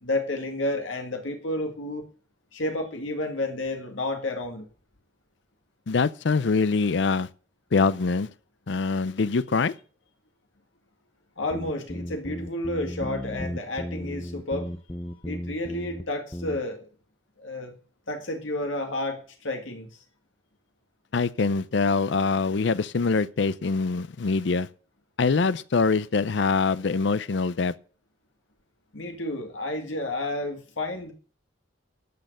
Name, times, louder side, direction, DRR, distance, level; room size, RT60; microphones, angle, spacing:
voice 1, 0.0-2.1 2.5-4.7 11.4-14.7 15.3-16.9 17.4-17.7 18.1-19.9 28.9-31.1, left 1 dB, 80° left, 1.9 m, -31 dB
voice 2, 5.9-7.3 7.7-8.3 8.7-9.7 21.1-24.7 25.2-27.7, left 4 dB, 60° left, 0.5 m, -24 dB
sound 1, 11.4-16.1 16.3-16.6, equal, 15° left, 0.6 m, -35 dB
12.0 x 6.5 x 7.9 m
head